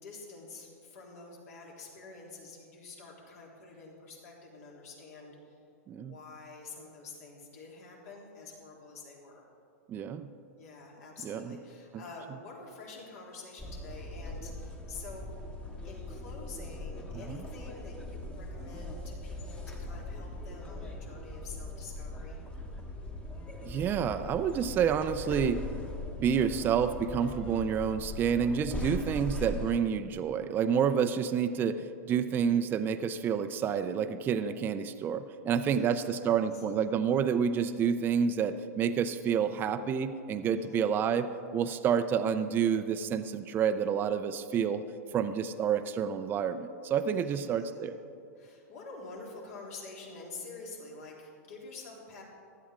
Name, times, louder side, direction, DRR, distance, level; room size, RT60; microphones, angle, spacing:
voice 1, 0.0-5.6 6.0-9.5 10.6-15.4 15.8-22.4 35.4-36.6 40.6-40.8 47.0-47.9 48.4-52.2, left 3 dB, 70° left, -2 dB, 3.5 m, -48 dB
voice 2, 9.9-10.3 11.2-11.6 17.3-17.4 23.6-25.6 26.2-44.8 45.1-48.0, right 7 dB, 25° right, 9 dB, 0.5 m, -29 dB
sound 1, 13.6-29.8, left 2 dB, 10° left, 1.2 m, -40 dB
15.5 x 11.5 x 3.7 m, 2.5 s
hypercardioid pair, 130°, 8 cm